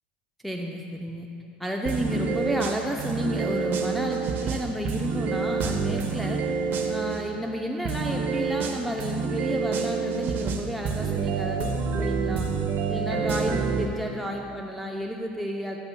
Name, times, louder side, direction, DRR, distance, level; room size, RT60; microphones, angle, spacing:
voice 1, 0.4-1.3 1.6-6.4 6.9-12.5 12.9-15.8, equal, ahead, 0 dB, 0.6 m, -31 dB
sound 1, 1.9-7.2 7.9-13.9, right 5 dB, 45° right, 0.8 m, -28 dB
13.0 x 6.9 x 2.2 m, 2.8 s
hypercardioid pair, 80°, 5 cm